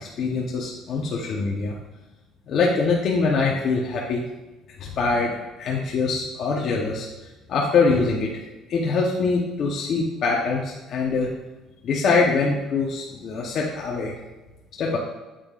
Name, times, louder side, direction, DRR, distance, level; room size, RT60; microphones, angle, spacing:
voice 1, 0.0-1.7 2.5-4.2 4.8-7.1 7.5-8.3 8.7-11.3 11.8-14.1 14.8-15.0, left 4 dB, 45° left, -3 dB, 0.8 m, -23 dB
8.6 x 7.3 x 2.4 m, 1.1 s
cardioid pair, 175°, 0 cm